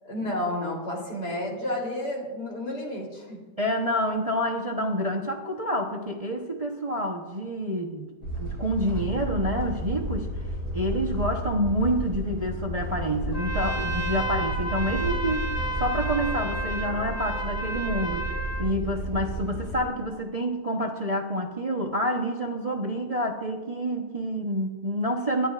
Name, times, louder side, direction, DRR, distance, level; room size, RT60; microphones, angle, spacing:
voice 1, 0.0-3.4, left 1 dB, 70° left, -2 dB, 4.0 m, -31 dB
voice 2, 3.6-8.1 8.4-10.3 10.7-15.5 15.8-18.3 18.6-25.5, equal, 25° right, 1 dB, 0.9 m, -28 dB
sound 1, 8.2-19.8, right 1 dB, 45° left, 6.2 m, -32 dB
Trumpet, 13.3-18.7, right 1 dB, 15° left, 0.6 m, -32 dB
27.0 x 11.5 x 2.5 m, 1.2 s
omnidirectional pair, 1.8 m